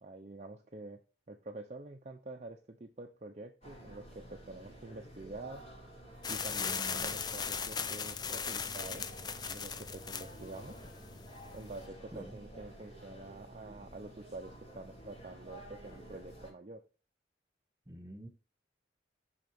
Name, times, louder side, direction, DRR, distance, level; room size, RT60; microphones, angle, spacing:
voice 1, 0.0-1.0 1.3-5.6 6.3-9.1 9.5-10.8 11.5-16.8, right 2 dB, 40° right, 3 dB, 0.6 m, -47 dB
sound 1, 3.6-16.5, right 1 dB, 40° left, 3.7 m, -51 dB
sound 2, 6.2-11.8, left 6 dB, 25° left, 0.4 m, -38 dB
voice 2, 6.6-7.1 12.1-12.4 17.9-18.3, right 1 dB, 15° right, 4 dB, 1.9 m, -47 dB
6.5 x 5.7 x 3.5 m, 0.35 s
head